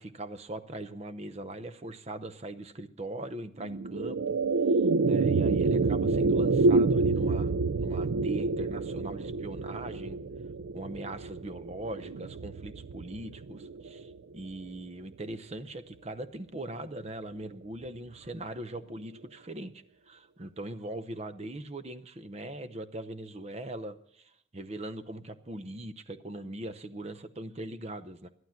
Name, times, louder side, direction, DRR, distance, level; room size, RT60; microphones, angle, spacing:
voice 1, 0.0-4.4 4.7-10.2 10.7-28.3, right 1 dB, 30° right, 12 dB, 0.7 m, -41 dB
sound 1, 3.6-14.1, right 3 dB, 80° right, 0.4 m, -28 dB
13.0 x 12.0 x 5.8 m, 0.70 s
head